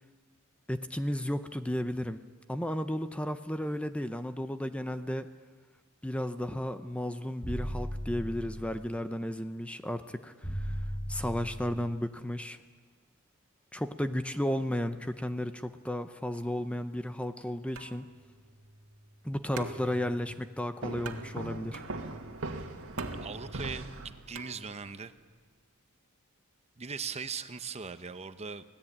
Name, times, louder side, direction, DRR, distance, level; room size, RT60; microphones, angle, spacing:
voice 1, 0.7-2.2 2.5-5.3 6.0-10.8 11.1-12.6 13.7-18.1 19.2-21.8, left 1 dB, 5° left, 9 dB, 0.7 m, -33 dB
sound 1, 7.4-8.9 10.4-11.9, equal, 35° left, 6.5 m, -36 dB
sound 2, 17.8-25.1, right 3 dB, 85° right, 1.8 m, -47 dB
sound 3, 20.8-24.5, right 2 dB, 65° right, 1.9 m, -39 dB
voice 2, 23.2-25.1 26.8-28.6, right 5 dB, 30° right, 11 dB, 0.8 m, -39 dB
25.5 x 17.5 x 8.7 m, 1.4 s
head